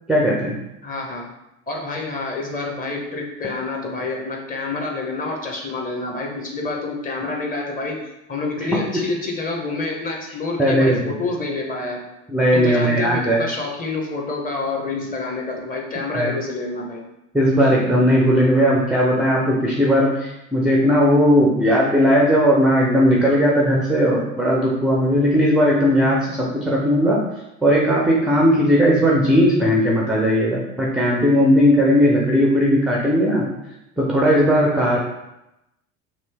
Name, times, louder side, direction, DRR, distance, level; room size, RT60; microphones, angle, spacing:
voice 1, 0.1-0.6 8.6-8.7 10.6-11.0 12.3-13.5 16.1-16.3 17.3-27.2 27.6-33.4 34.0-35.0, equal, ahead, -3 dB, 0.4 m, -17 dB
voice 2, 0.8-1.3 1.7-12.0 12.5-17.0, left 3 dB, 20° left, 0 dB, 0.7 m, -28 dB
3.0 x 2.6 x 3.3 m, 0.90 s
figure-of-eight pair, 70°, 40 cm